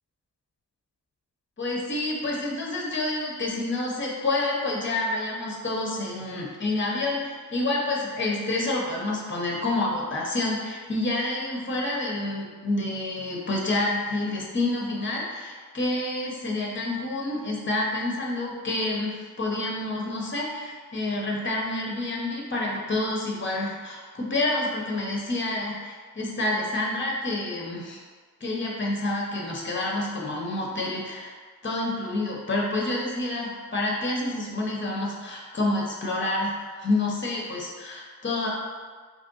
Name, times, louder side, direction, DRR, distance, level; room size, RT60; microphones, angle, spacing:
voice 1, 1.6-28.0 28.4-31.3 31.6-38.5, left 2 dB, 30° left, -2 dB, 0.8 m, -28 dB
3.2 x 2.6 x 3.8 m, 1.5 s
cardioid pair, 45°, 36 cm